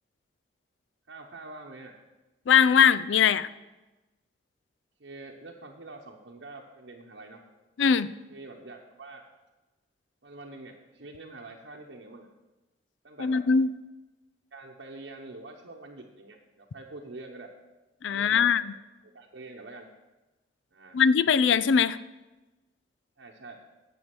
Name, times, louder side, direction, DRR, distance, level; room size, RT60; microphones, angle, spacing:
voice 1, 1.1-1.9 5.0-7.4 8.3-9.2 10.2-12.3 13.0-13.4 14.5-17.5 18.1-18.5 19.1-19.9 20.7-21.0 23.2-23.6, right 2 dB, 80° right, -1 dB, 0.9 m, -45 dB
voice 2, 2.5-3.5 7.8-8.1 13.2-13.7 18.0-18.6 20.9-22.0, left 7 dB, 85° left, 16 dB, 0.4 m, -21 dB
9.5 x 7.1 x 6.0 m, 1.1 s
head